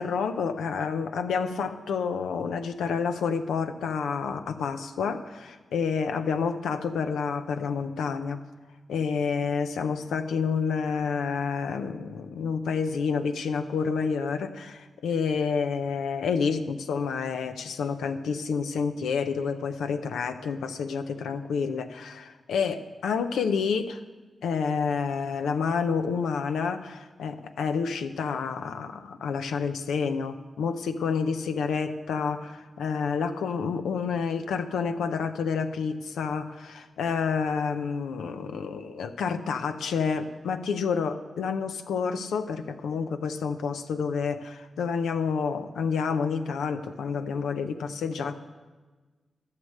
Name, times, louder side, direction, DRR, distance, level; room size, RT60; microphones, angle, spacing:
voice 1, 0.0-8.4 8.9-24.0 24.4-48.3, left 5 dB, 85° left, 8 dB, 0.6 m, -29 dB
13.0 x 6.6 x 6.6 m, 1.3 s
supercardioid pair, 45°, 0 cm